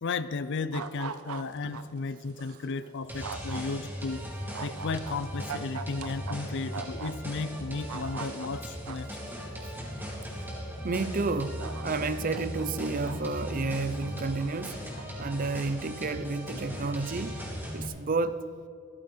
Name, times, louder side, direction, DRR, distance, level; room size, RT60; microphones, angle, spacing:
voice 1, 0.0-4.2 4.6-9.1, left 4 dB, 55° left, 0.5 m, -34 dB
sound 1, 0.7-1.8 2.4-2.5 3.2-3.6 4.5-6.3 6.7-7.1 7.6-9.1 10.0-10.1 11.0-11.1 11.6-13.2 13.7-14.5 15.0-15.3, right 6 dB, 85° right, 0.7 m, -40 dB
sound 2, 3.1-17.9, equal, 10° right, 2.7 m, -38 dB
voice 2, 10.8-14.8 15.2-17.3 17.7-18.5, right 3 dB, 40° right, 0.6 m, -31 dB
16.0 x 13.0 x 4.4 m
head